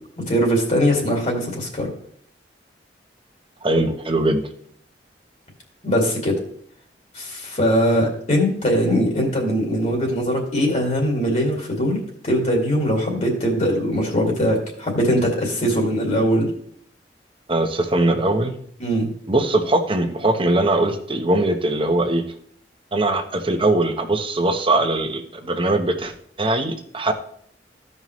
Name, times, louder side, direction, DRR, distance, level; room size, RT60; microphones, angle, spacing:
voice 1, 0.3-1.9 5.8-6.4 7.1-16.5 18.8-19.1, equal, 45° left, 0 dB, 2.2 m, -21 dB
voice 2, 3.6-4.4 17.5-18.6 19.3-22.2 22.9-26.1 26.4-27.1, right 2 dB, 30° right, 6 dB, 1.0 m, -21 dB
15.0 x 5.5 x 3.1 m, 0.64 s
head